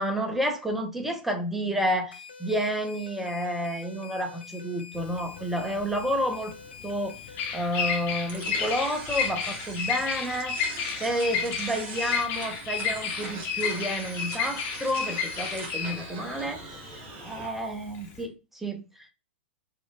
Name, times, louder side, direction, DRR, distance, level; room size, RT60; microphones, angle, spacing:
voice 1, 0.0-6.5 6.8-7.2 7.5-10.6 11.0-16.6 17.2-19.1, equal, 5° right, 0.5 m, -30 dB
sound 1, 2.1-7.5, left 5 dB, 75° left, 0.6 m, -46 dB
Bird vocalization bird call bird song, 5.0-18.2, left 6 dB, 35° left, 0.9 m, -32 dB
sound 2, 8.3-17.5, right 3 dB, 30° right, 1.1 m, -41 dB
4.2 x 2.3 x 2.4 m
figure-of-eight pair, 100°, 6 cm